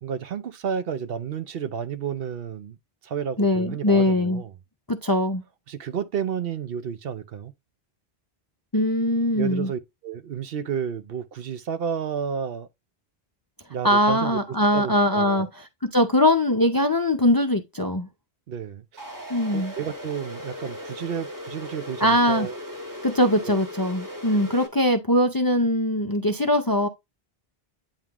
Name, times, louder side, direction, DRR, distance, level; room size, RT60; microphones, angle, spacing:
voice 1, 0.0-2.8 3.0-4.5 5.7-7.5 9.4-12.7 13.7-14.4 14.7-15.5 18.5-19.0 19.5-22.6 23.4-23.6, right 7 dB, 65° right, 0.9 m, -31 dB
voice 2, 3.4-4.4 4.9-5.4 8.7-9.7 13.8-18.1 19.3-19.7 22.0-22.5 23.0-26.9, left 1 dB, 30° left, 0.4 m, -21 dB
sound 1, 19.0-24.7, left 1 dB, 20° right, 1.4 m, -37 dB
8.8 x 3.7 x 2.9 m
omnidirectional pair, 1.1 m